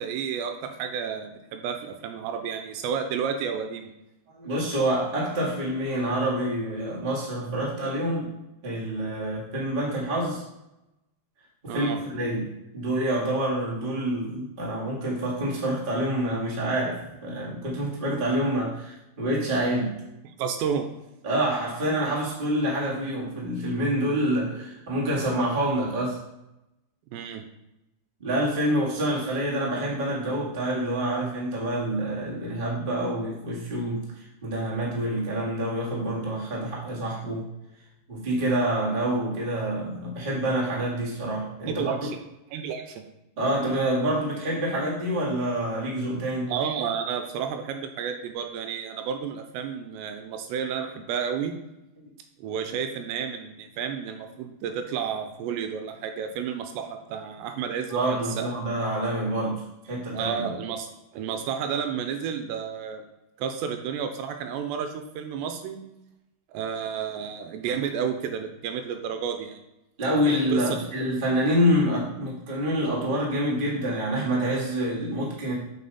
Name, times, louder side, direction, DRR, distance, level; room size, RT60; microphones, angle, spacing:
voice 1, 0.0-3.9 11.7-12.0 20.4-20.9 27.1-27.4 41.7-42.1 42.5-43.0 46.5-51.5 52.4-58.5 60.1-60.9 61.1-63.0 63.4-65.8 66.5-69.6 70.3-70.8, right 7 dB, 85° right, 6 dB, 2.8 m, -31 dB
voice 2, 4.3-8.3 8.6-10.4 11.6-20.0 21.2-26.2 28.2-37.5 38.1-42.1 43.4-46.5 57.9-60.5 70.0-75.5, right 1 dB, 60° right, -5 dB, 0.5 m, -27 dB
7.5 x 5.4 x 4.2 m, 0.92 s
omnidirectional pair, 5.1 m